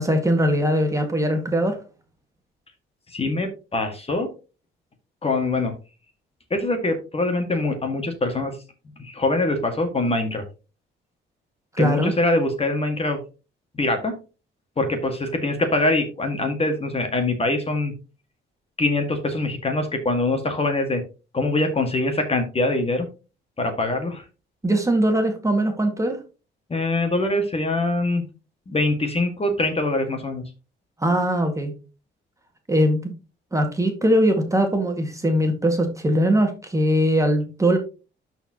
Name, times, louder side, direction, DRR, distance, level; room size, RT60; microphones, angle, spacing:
voice 1, 0.0-1.8 11.8-12.1 24.6-26.2 31.0-31.7 32.7-33.1 33.5-37.8, equal, 15° right, 4 dB, 1.8 m, -21 dB
voice 2, 3.1-4.3 5.2-5.7 6.5-8.6 9.0-10.4 11.8-13.2 13.7-14.1 14.8-17.9 18.8-21.0 21.3-23.1 23.6-24.2 26.7-28.2 28.7-30.4, left 2 dB, 30° left, 5 dB, 1.8 m, -23 dB
12.5 x 4.6 x 2.9 m, 0.32 s
cardioid pair, 90°, 20 cm